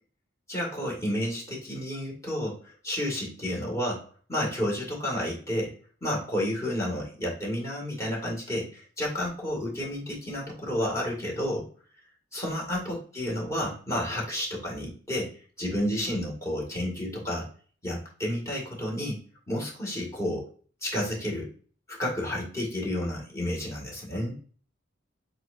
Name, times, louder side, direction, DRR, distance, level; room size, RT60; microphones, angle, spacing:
voice 1, 0.5-4.0 4.3-5.7 6.0-11.7 12.3-17.5 17.8-19.2 19.5-20.5 20.8-21.5 21.9-24.3, left 1 dB, 15° left, -3 dB, 2.0 m, -31 dB
7.6 x 2.8 x 2.5 m, 0.42 s
head